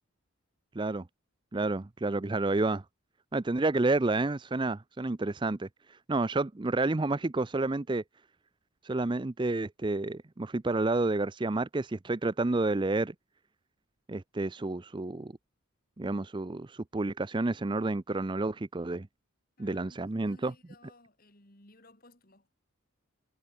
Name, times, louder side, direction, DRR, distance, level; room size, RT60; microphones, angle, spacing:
voice 1, 1.5-2.8 3.3-5.7 6.1-8.0 8.8-13.1 14.1-15.3 16.0-19.1 19.6-20.5, right 2 dB, 20° right, 0.5 m, -30 dB
voice 2, 19.6-22.5, left 2 dB, 40° left, 4.3 m, -58 dB
head